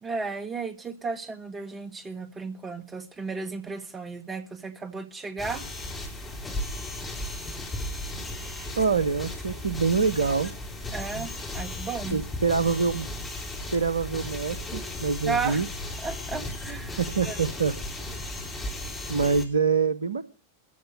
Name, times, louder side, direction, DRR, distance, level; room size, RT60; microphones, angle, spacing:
voice 1, 0.0-5.6 10.9-12.2 15.2-15.7 16.0-17.0 17.2-17.4, right 4 dB, 20° right, 7 dB, 2.0 m, -34 dB
sound 1, 5.4-19.4, left 1 dB, 15° left, 4.0 m, -35 dB
voice 2, 8.8-10.5 11.1-11.3 12.1-13.1 13.7-15.7 17.0-17.7 18.1-18.2 19.1-20.2, right 5 dB, 75° right, 14 dB, 0.8 m, -25 dB
15.0 x 7.8 x 7.7 m, 0.38 s
figure-of-eight pair, 90°, 0 cm